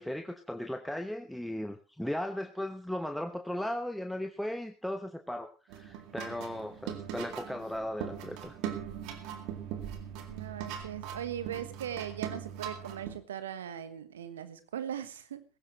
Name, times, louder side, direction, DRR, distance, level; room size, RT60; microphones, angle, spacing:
voice 1, 0.0-8.5, left 1 dB, ahead, 6 dB, 1.1 m, -37 dB
sound 1, 5.7-13.2, right 9 dB, 65° right, 2.2 m, -40 dB
voice 2, 10.3-15.4, right 9 dB, 80° right, 13 dB, 1.3 m, -39 dB
17.5 x 15.5 x 3.2 m, 0.33 s
hypercardioid pair, 70°, 0 cm